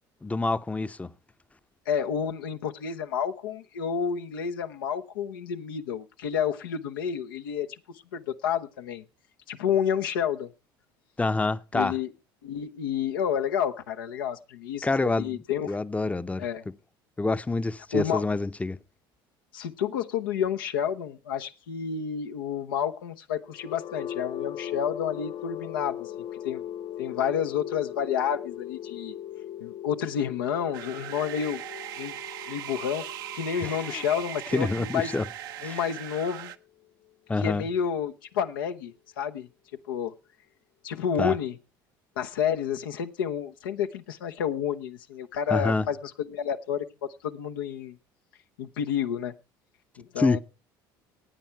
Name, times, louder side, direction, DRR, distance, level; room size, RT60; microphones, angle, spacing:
voice 1, 0.2-1.1 11.2-11.9 14.8-15.4 15.7-16.4 17.2-18.8 33.6-34.0 34.5-35.2 35.6-35.8 37.3-37.7 41.2-41.3 45.5-45.9 50.2-50.4, left 3 dB, 10° left, 0.7 m, -27 dB
voice 2, 1.9-7.7 8.1-9.0 9.5-10.5 11.7-12.1 12.4-15.8 16.4-16.6 17.9-18.3 19.5-26.6 27.0-29.2 29.6-31.6 32.0-32.1 32.5-35.1 35.6-36.5 37.4-39.5 39.9-40.1 40.8-41.6 42.2-48.0 48.6-49.3 50.0-50.4, left 8 dB, 85° left, 0.9 m, -30 dB
sound 1, 23.4-37.3, left 10 dB, 55° left, 0.8 m, -40 dB
sound 2, 30.7-36.6, right 12 dB, 80° right, 0.8 m, -39 dB
15.5 x 9.0 x 4.5 m
hypercardioid pair, 70°, 11 cm